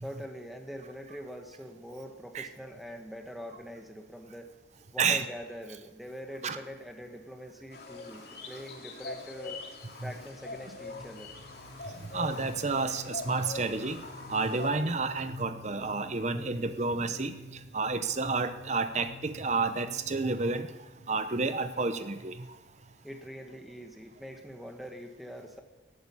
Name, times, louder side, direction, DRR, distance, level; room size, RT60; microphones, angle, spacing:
voice 1, 0.0-4.5 4.9-9.6 10.0-11.3 23.0-25.6, equal, ahead, 3 dB, 1.5 m, -43 dB
sound 1, 7.7-14.7, left 3 dB, 55° left, 2.8 m, -43 dB
sound 2, 9.8-22.3, left 2 dB, 80° right, 7.3 m, -50 dB
voice 2, 12.1-14.0 14.3-17.3 17.7-20.7 21.1-22.5, right 4 dB, 40° right, 10 dB, 0.7 m, -30 dB
14.0 x 11.5 x 8.4 m, 1.2 s
head